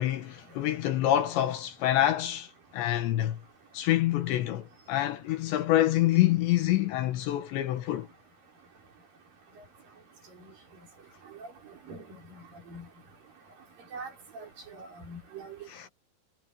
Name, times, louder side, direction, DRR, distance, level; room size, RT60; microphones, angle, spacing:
voice 1, 0.0-3.4 3.7-8.1 15.7-15.9, left 13 dB, 70° left, 3.2 m, -26 dB
voice 2, 12.3-12.9 13.9-15.6, right 3 dB, 45° right, 6.1 m, -43 dB
omnidirectional pair, 5.6 m